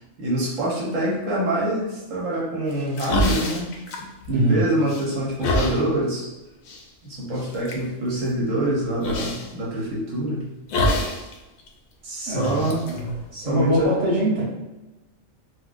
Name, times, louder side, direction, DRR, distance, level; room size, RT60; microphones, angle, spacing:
voice 1, 0.2-3.7 4.3-6.3 7.0-10.5 12.0-12.9 13.3-13.9, right 1 dB, 70° right, -5 dB, 1.3 m, -25 dB
sound 1, 2.7-4.5 4.9-5.8 6.7-6.8 7.3-7.8 9.0-9.5 10.7-11.3 11.6-11.7 12.3-13.8, left 1 dB, 90° left, 1.0 m, -26 dB
voice 2, 4.3-4.7 12.3-13.2 13.4-14.4, right 1 dB, 30° right, -7 dB, 0.9 m, -23 dB
4.3 x 2.1 x 2.4 m, 1.1 s
omnidirectional pair, 1.4 m